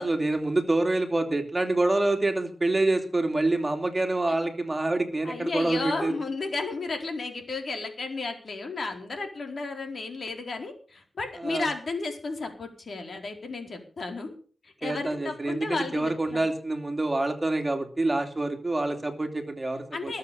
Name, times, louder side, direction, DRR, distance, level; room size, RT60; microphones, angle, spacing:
voice 1, 0.0-6.1 11.4-11.7 14.8-20.2, right 2 dB, 25° right, 6 dB, 2.8 m, -27 dB
voice 2, 5.2-14.3 14.6-16.4 19.9-20.2, left 3 dB, 55° left, 4 dB, 4.5 m, -33 dB
20.5 x 7.7 x 6.9 m, 0.41 s
cardioid pair, 80°, 0 cm